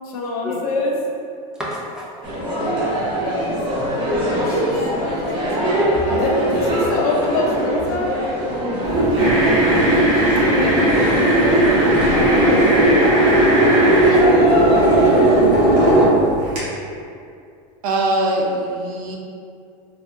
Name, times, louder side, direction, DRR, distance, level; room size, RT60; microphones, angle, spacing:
voice 1, 0.0-1.0 3.2-8.1 10.4-12.6, left 2 dB, 85° left, -1 dB, 0.6 m, -26 dB
voice 2, 1.6-2.1 2.4-2.5 2.8-2.9 14.0-16.1, left 1 dB, 5° right, -6 dB, 0.5 m, -33 dB
Queneau ambiance Hall Casier, 2.2-15.4, equal, 25° right, 0.8 m, -22 dB
sound 1, 8.8-16.6, right 1 dB, 45° right, 1.1 m, -16 dB
sound 2, 9.2-14.2, right 1 dB, 60° right, 1.3 m, -23 dB
voice 3, 17.8-19.2, right 1 dB, 85° right, 0 dB, 0.5 m, -21 dB
3.4 x 2.3 x 2.6 m, 2.4 s
supercardioid pair, 145°, 19 cm